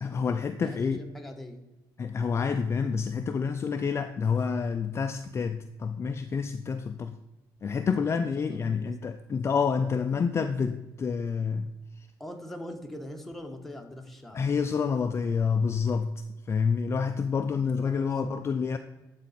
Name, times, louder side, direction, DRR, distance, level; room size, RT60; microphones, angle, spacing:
voice 1, 0.0-1.0 2.0-7.2 7.6-11.7 14.3-18.8, left 5 dB, 35° left, 8 dB, 0.4 m, -28 dB
voice 2, 0.6-1.6 7.6-9.0 12.2-14.4 17.8-18.1, left 1 dB, 5° left, 2 dB, 1.2 m, -42 dB
12.0 x 4.1 x 4.2 m, 1.0 s
cardioid pair, 95°, 8 cm